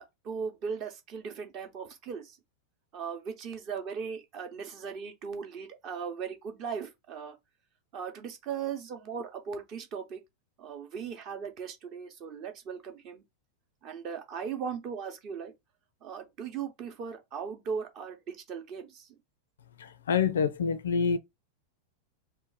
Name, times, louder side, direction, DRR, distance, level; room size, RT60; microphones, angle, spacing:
voice 1, 0.0-2.4 2.9-7.4 7.9-10.2 10.6-13.2 13.8-15.5 16.0-19.1, right 6 dB, 40° right, 0.8 m, -38 dB
voice 2, 20.1-21.2, left 6 dB, 65° left, 0.4 m, -26 dB
3.0 x 2.1 x 3.9 m
figure-of-eight pair, 90°, 0 cm